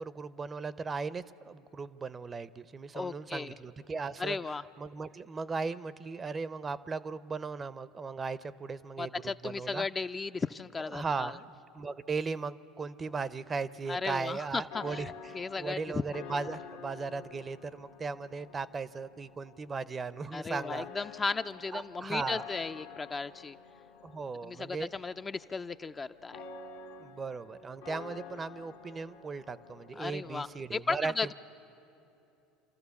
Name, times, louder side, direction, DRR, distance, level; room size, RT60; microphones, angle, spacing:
voice 1, 0.0-4.4 4.8-9.9 10.9-20.9 21.7-22.4 24.0-24.9 27.0-31.3, right 4 dB, 25° right, 17 dB, 0.6 m, -37 dB
voice 2, 2.9-3.5 4.2-4.6 9.0-11.3 13.9-16.0 20.3-23.6 24.4-26.4 30.0-31.3, left 4 dB, 25° left, 10 dB, 0.4 m, -35 dB
sound 1, 13.0-30.6, left 6 dB, 80° left, 1.2 m, -49 dB
28.0 x 13.5 x 7.1 m, 2.9 s
hypercardioid pair, 85°, 0 cm